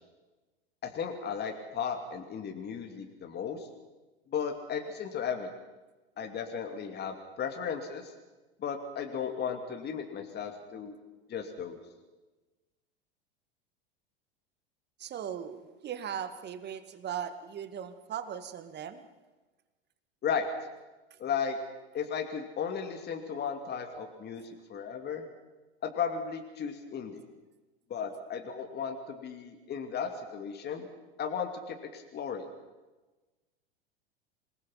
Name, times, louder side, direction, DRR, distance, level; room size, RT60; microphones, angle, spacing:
voice 1, 0.8-3.7 4.3-5.5 6.2-8.1 8.6-11.0 11.3-11.8 20.2-20.5 21.2-21.6 21.9-25.2 25.8-27.3 27.9-30.9 31.2-32.5, left 7 dB, 30° left, 4 dB, 2.6 m, -35 dB
voice 2, 15.0-19.0 21.1-21.2, right 8 dB, 35° right, 11 dB, 2.0 m, -38 dB
27.0 x 20.0 x 5.8 m, 1.2 s
hypercardioid pair, 85°, 31 cm